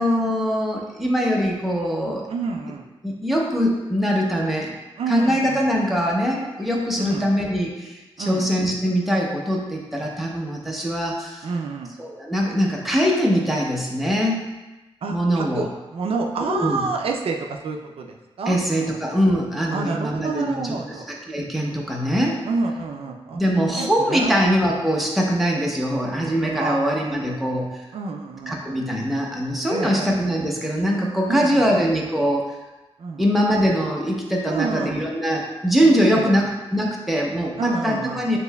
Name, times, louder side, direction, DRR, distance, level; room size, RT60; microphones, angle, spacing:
voice 1, 0.0-2.2 3.0-4.7 5.1-11.5 12.0-14.4 15.1-15.6 16.5-16.8 18.5-20.7 21.3-22.4 23.3-27.7 28.5-32.5 33.2-38.4, equal, ahead, -2 dB, 0.6 m, -22 dB
voice 2, 2.3-2.8 5.0-5.7 7.0-7.3 8.2-8.5 11.4-11.9 15.0-15.7 15.9-18.6 18.8-19.1 19.7-21.1 22.4-23.4 23.8-24.4 26.6-27.4 27.9-28.5 29.7-30.1 31.3-31.8 33.0-33.3 34.5-35.0 36.0-36.4 37.6-38.2, right 4 dB, 65° right, 2 dB, 0.4 m, -28 dB
6.6 x 2.7 x 2.2 m, 1.1 s
wide cardioid pair, 120°, 10 cm